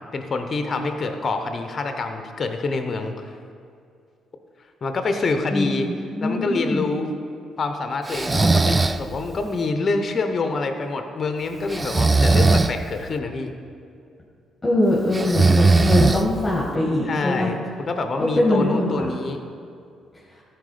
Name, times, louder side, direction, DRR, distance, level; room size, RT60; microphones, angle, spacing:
voice 1, 0.0-3.4 4.8-5.9 6.2-7.2 7.6-13.5 17.1-19.4, left 3 dB, 45° left, 6 dB, 0.9 m, -26 dB
voice 2, 5.5-6.9 14.6-17.5 18.2-19.1, left 1 dB, 20° left, -5 dB, 2.2 m, -22 dB
Breathing, 8.1-9.0 11.7-12.7 15.1-16.5, right 3 dB, 25° right, 0.4 m, -18 dB
13.0 x 4.6 x 5.1 m, 2.4 s
supercardioid pair, 55°, 0 cm